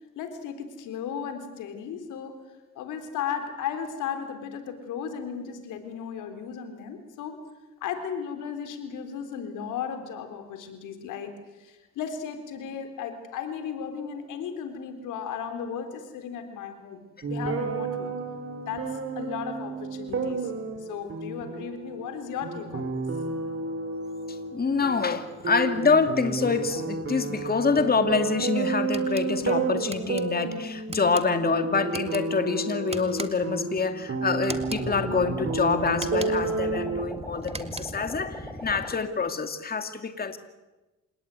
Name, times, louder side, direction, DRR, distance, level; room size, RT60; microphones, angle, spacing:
voice 1, 0.2-2.5 2.8-7.5 7.8-11.3 11.6-18.1 18.7-20.5 20.8-23.0, left 7 dB, 90° left, 8 dB, 3.8 m, -35 dB
sound 1, 17.2-37.1, right 3 dB, 45° right, 5.1 m, -31 dB
voice 2, 24.3-40.4, left 4 dB, 30° left, 8 dB, 2.2 m, -26 dB
sound 2, 28.9-29.3 29.9-30.2 30.9-31.3 31.9-32.2 32.9-33.5 34.4-34.9 35.9-36.5 37.4-38.1, right 3 dB, 20° right, 2.1 m, -39 dB
sound 3, 34.5-39.0, equal, 5° left, 3.7 m, -39 dB
28.0 x 18.5 x 9.5 m, 1.1 s
cardioid pair, 90°, 30 cm